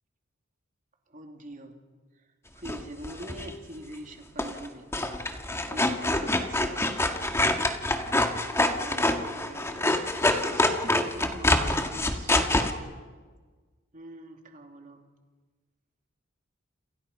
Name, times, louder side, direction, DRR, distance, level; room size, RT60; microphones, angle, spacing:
voice 1, 1.1-1.8 2.5-5.2 5.7-7.0 8.8-10.1 10.5-12.5 13.9-15.0, right 1 dB, 40° right, 3 dB, 3.2 m, -44 dB
sound 1, 2.6-3.5 4.4-4.7 4.9-12.7, left 1 dB, 15° left, 1.8 m, -26 dB
29.5 x 27.5 x 5.7 m, 1.4 s
head